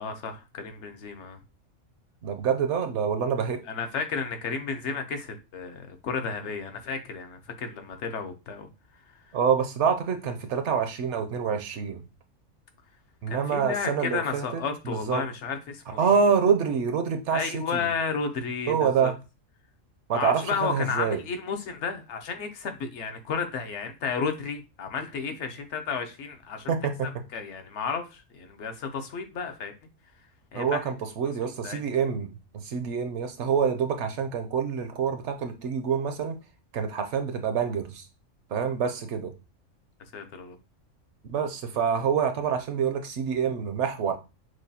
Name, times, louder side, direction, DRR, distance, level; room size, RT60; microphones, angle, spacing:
voice 1, 0.0-1.4 3.7-8.7 13.3-16.0 17.3-19.1 20.1-26.7 27.3-29.7 30.5-30.8 31.6-31.8 40.1-40.6, left 5 dB, 65° left, 0.9 m, -32 dB
voice 2, 2.2-3.6 9.3-12.0 13.2-15.2 16.0-17.9 18.7-19.1 20.1-21.2 26.7-27.1 30.5-36.4 36.7-38.0 38.5-39.3 41.3-44.2, right 6 dB, 70° right, 0.8 m, -26 dB
6.1 x 2.2 x 2.7 m
omnidirectional pair, 1.3 m